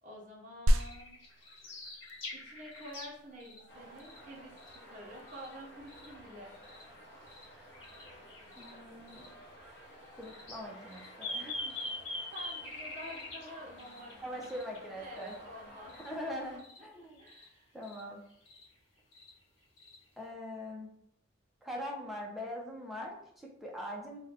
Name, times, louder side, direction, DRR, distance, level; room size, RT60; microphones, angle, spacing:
voice 1, 0.0-1.2 2.3-6.5 12.3-14.5 15.0-16.4 17.2-17.7, equal, 40° right, -2 dB, 0.8 m, -49 dB
sound 1, 0.7-3.1 3.3-5.6 5.9-6.8 7.3-7.5 7.7-8.7 9.1-9.3 10.2-15.3 15.9-16.1 16.6-16.8 17.2-17.5 17.8-18.0 18.3-18.6 19.1-19.3 19.8-20.0, left 2 dB, 75° left, 1.2 m, -44 dB
sound 2, 0.7-10.6, equal, 75° right, 0.3 m, -37 dB
sound 3, 3.7-16.6, equal, 55° left, 0.8 m, -54 dB
voice 2, 8.6-9.3 10.1-11.8 14.2-15.3 15.9-17.2 17.7-18.2 20.2-20.9 21.6-24.2, equal, ahead, -2 dB, 0.5 m, -42 dB
2.6 x 2.2 x 4.0 m, 0.70 s
head